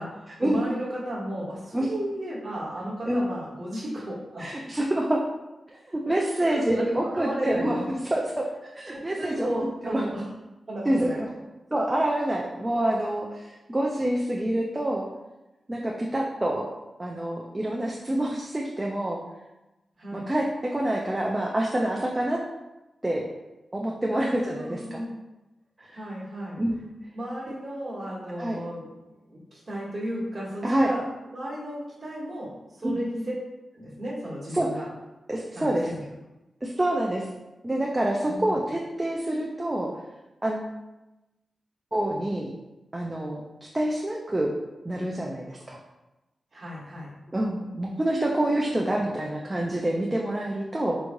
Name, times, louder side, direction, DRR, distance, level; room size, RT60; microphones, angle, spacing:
voice 1, 0.0-4.5 6.4-7.9 8.9-10.3 10.7-11.2 20.0-20.3 24.1-25.1 25.9-26.6 27.1-29.0 29.3-31.0 31.3-33.4 33.7-34.9 35.5-36.0 38.2-38.5 46.5-47.1, right 1 dB, 35° right, -10 dB, 1.3 m, -34 dB
voice 2, 4.4-5.2 5.9-9.5 9.8-10.1 10.9-11.3 11.7-15.1 15.7-16.6 17.0-19.2 20.1-22.4 23.0-23.2 23.7-25.0 25.8-26.0 26.6-26.9 28.4-28.6 30.6-30.9 32.8-33.0 34.5-34.7 35.3-35.9 36.6-37.3 37.6-39.9 40.4-40.7 41.9-42.5 42.9-43.4 43.7-44.5 44.8-45.8 47.3-51.0, right 1 dB, 15° right, -1 dB, 0.4 m, -27 dB
4.7 x 3.0 x 2.6 m, 1.0 s
wide cardioid pair, 105°, 0 cm